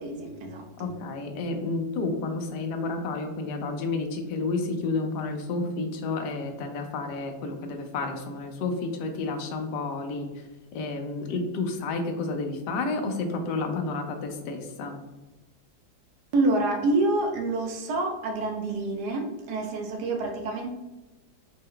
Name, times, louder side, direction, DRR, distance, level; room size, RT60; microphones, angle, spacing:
voice 1, 0.0-0.9 16.3-20.7, right 2 dB, 75° right, 3 dB, 1.1 m, -27 dB
voice 2, 0.8-10.4 10.7-15.0, left 3 dB, 80° left, 5 dB, 1.2 m, -30 dB
4.1 x 2.2 x 3.6 m, 1.1 s
omnidirectional pair, 1.8 m